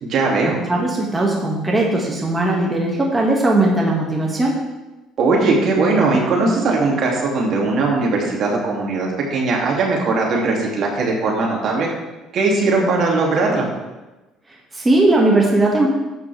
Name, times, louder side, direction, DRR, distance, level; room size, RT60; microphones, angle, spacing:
voice 1, 0.0-0.6 5.2-11.9 12.3-13.7, right 3 dB, 55° right, -2 dB, 2.7 m, -19 dB
voice 2, 0.7-4.6 14.7-15.9, right 2 dB, 15° right, -2 dB, 2.1 m, -18 dB
12.0 x 8.4 x 3.5 m, 1.1 s
cardioid pair, 100°, 0 cm